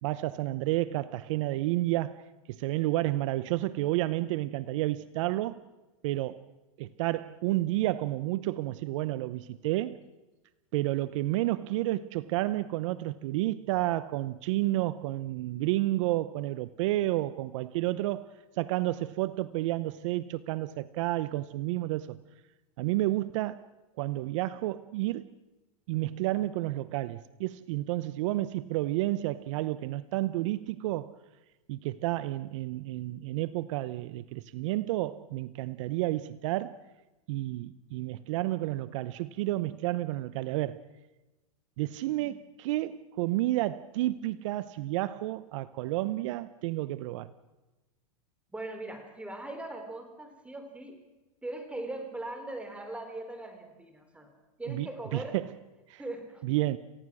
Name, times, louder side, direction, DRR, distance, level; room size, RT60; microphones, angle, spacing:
voice 1, 0.0-5.6 6.0-6.4 6.8-10.0 10.7-18.3 18.6-22.2 22.8-23.6 24.0-25.3 25.9-31.1 31.7-36.8 37.3-40.8 41.8-47.3 54.7-55.5 55.9-56.0 56.4-56.8, right 16 dB, 60° right, 0.8 m, -31 dB
voice 2, 48.5-51.0 51.4-54.3 54.6-55.4 56.0-56.4, right 2 dB, 5° right, 3.9 m, -40 dB
28.0 x 16.5 x 6.2 m
hypercardioid pair, 130°, 18 cm